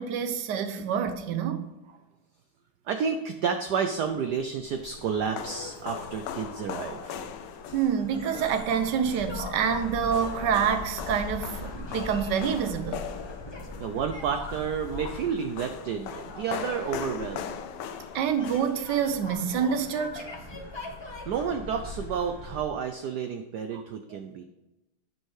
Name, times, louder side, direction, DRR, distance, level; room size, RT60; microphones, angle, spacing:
voice 1, 0.0-1.6 7.7-13.0 18.1-20.3 23.7-23.8 24.1-24.2, right 7 dB, 65° right, 9 dB, 1.2 m, -27 dB
voice 2, 2.9-7.3 13.8-17.5 21.3-24.4, right 6 dB, 80° right, 7 dB, 0.9 m, -31 dB
sound 1, 4.3-19.3, left 8 dB, 80° left, 1.6 m, -40 dB
sound 2, 4.9-22.6, left 2 dB, 45° left, 0.3 m, -41 dB
9.0 x 5.5 x 4.8 m, 0.97 s
omnidirectional pair, 2.4 m